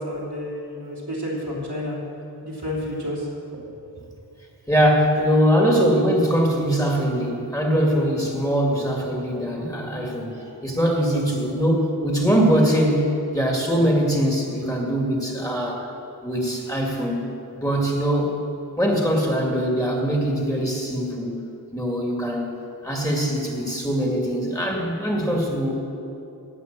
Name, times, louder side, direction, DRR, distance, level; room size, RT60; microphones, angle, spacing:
voice 1, 0.0-2.0 2.4-3.3 3.5-3.6, left 1 dB, 80° right, -5 dB, 3.3 m, -30 dB
voice 2, 4.7-13.1 13.3-15.8 16.2-17.3 17.5-18.3 18.8-21.4 21.7-22.5 22.8-25.8, equal, 10° left, -1 dB, 2.3 m, -22 dB
17.5 x 5.8 x 7.5 m, 2.8 s
wide cardioid pair, 55°, 40 cm